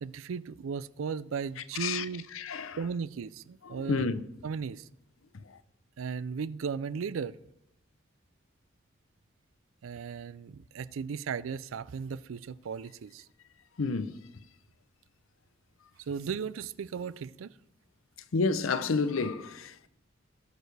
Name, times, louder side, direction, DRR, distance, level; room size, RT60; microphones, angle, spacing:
voice 1, 0.0-2.3 2.8-4.1 4.4-4.9 6.0-7.4 9.8-13.3 16.1-17.5, right 6 dB, 85° right, 0.4 m, -36 dB
voice 2, 1.6-2.1 2.3-2.8 3.6-4.2 5.3-5.6 13.8-14.2 18.3-19.9, left 4 dB, 90° left, 0.6 m, -30 dB
18.0 x 6.7 x 3.3 m
head